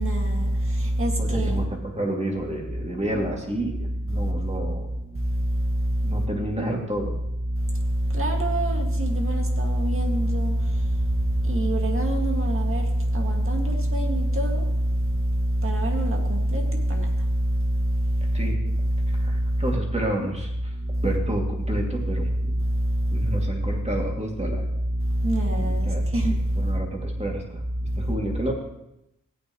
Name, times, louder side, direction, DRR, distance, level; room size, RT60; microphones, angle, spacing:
voice 1, 0.0-1.6 4.1-4.3 5.1-6.2 7.5-18.4 18.9-19.6 20.8-21.0 22.6-23.4 25.0-26.8 27.9-28.1, right 1 dB, 40° right, 1 dB, 2.1 m, -24 dB
voice 2, 1.2-4.9 6.0-7.1 18.3-18.6 19.1-20.5 21.0-22.5 23.1-24.7 25.5-27.6 28.0-28.5, right 1 dB, 20° right, 0 dB, 2.5 m, -30 dB
16.5 x 8.9 x 3.1 m, 0.85 s
wide cardioid pair, 80°, 33 cm